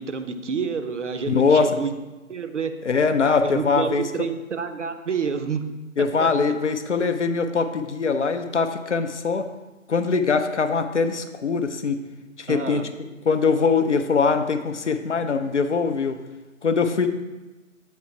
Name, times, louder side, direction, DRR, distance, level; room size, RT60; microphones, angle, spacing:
voice 1, 0.0-1.9 2.3-2.7 3.2-5.6 6.2-6.3 12.5-12.8, right 5 dB, 60° right, 8 dB, 0.6 m, -28 dB
voice 2, 1.3-1.7 2.8-4.0 6.0-9.5 9.9-12.0 12.4-12.8 13.3-16.2 16.6-17.1, left 5 dB, 60° left, 9 dB, 0.5 m, -22 dB
8.0 x 3.2 x 4.5 m, 1.1 s
figure-of-eight pair, 150°, 41 cm